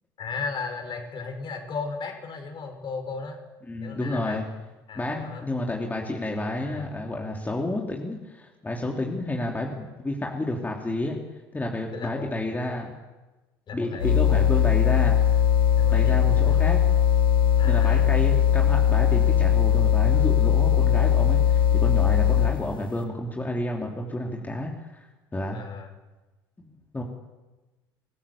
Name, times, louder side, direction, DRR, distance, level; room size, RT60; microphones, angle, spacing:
voice 1, 0.2-3.4 3.8-4.4 4.9-5.5 6.6-6.9 11.9-12.5 13.7-14.1 15.8-16.1 16.5-16.6 17.6-18.1 25.5-25.9, left 4 dB, 45° left, 4 dB, 5.5 m, -35 dB
voice 2, 3.7-4.4 4.9-11.2 11.5-13.0 13.7-15.2 15.9-16.8 17.6-25.1 25.3-25.6 26.6-26.7 26.9-27.0, left 1 dB, 15° left, 0 dB, 3.1 m, -30 dB
sound 1, 14.0-22.7, left 9 dB, 90° left, 1.8 m, -20 dB
25.0 x 15.5 x 7.2 m, 1.1 s
hypercardioid pair, 70°, 11 cm